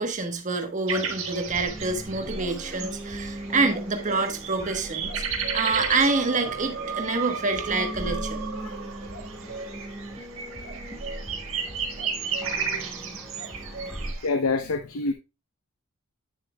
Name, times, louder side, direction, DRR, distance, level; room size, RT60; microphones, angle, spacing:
voice 1, 0.0-8.5, right 3 dB, 35° right, 1.2 m, -27 dB
sound 1, 0.9-14.3, right 5 dB, 65° right, 1.6 m, -34 dB
sound 2, 1.4-14.1, right 1 dB, ahead, 1.6 m, -38 dB
sound 3, 5.5-9.6, right 6 dB, 80° right, 1.5 m, -37 dB
voice 2, 14.2-15.1, left 3 dB, 80° left, 0.7 m, -27 dB
9.2 x 7.3 x 2.2 m
head